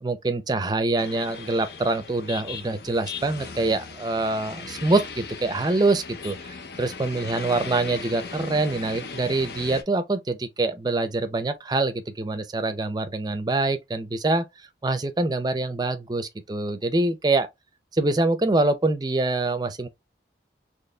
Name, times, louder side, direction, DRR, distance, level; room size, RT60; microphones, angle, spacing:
voice 1, 0.0-6.4 6.8-14.4 14.8-17.5 17.9-19.9, right 2 dB, 25° right, 0.5 m, -25 dB
sound 1, 1.0-9.8, left 5 dB, 60° left, 0.6 m, -38 dB
4.1 x 3.0 x 2.2 m
head